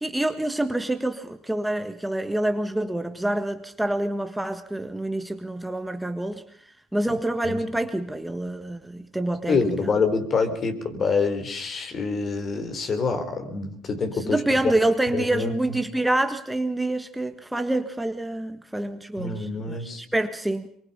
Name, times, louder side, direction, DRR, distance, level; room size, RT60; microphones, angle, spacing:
voice 1, 0.0-6.4 6.9-9.9 14.1-20.7, right 1 dB, 5° right, 7 dB, 1.5 m, -27 dB
voice 2, 9.5-14.4 15.1-15.5 19.2-20.0, left 4 dB, 40° left, 8 dB, 4.2 m, -26 dB
24.0 x 23.5 x 5.6 m, 0.63 s
supercardioid pair, 95°, 0 cm